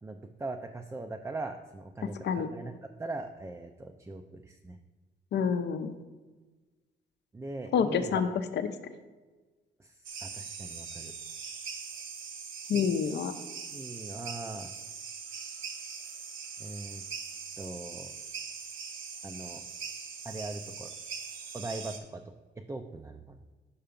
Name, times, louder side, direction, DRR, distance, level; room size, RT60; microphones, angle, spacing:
voice 1, 0.0-2.7 3.0-4.8 7.3-8.4 9.8-9.9 10.2-11.1 13.7-14.7 16.6-17.0 17.6-18.1 19.2-19.6 20.2-21.0 21.5-22.2 22.7-23.4, right 2 dB, 15° right, 4 dB, 0.4 m, -40 dB
voice 2, 5.3-6.0 7.7-8.6 12.7-13.3, left 7 dB, 60° left, 10 dB, 0.6 m, -28 dB
sound 1, 10.0-22.0, right 6 dB, 80° right, 0.9 m, -41 dB
5.6 x 4.7 x 5.1 m, 1.3 s
cardioid pair, 90°, 20 cm